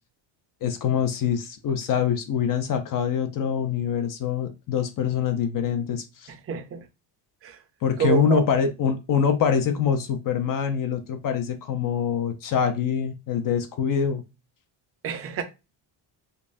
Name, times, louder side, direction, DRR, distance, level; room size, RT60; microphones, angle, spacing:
voice 1, 0.6-6.3 7.8-14.2, left 7 dB, 45° left, 0.5 m, -24 dB
voice 2, 6.3-6.8 7.4-7.6 8.0-8.4 15.0-15.4, right 9 dB, 30° right, 0.5 m, -28 dB
5.3 x 2.0 x 2.5 m
cardioid pair, 160°, 46 cm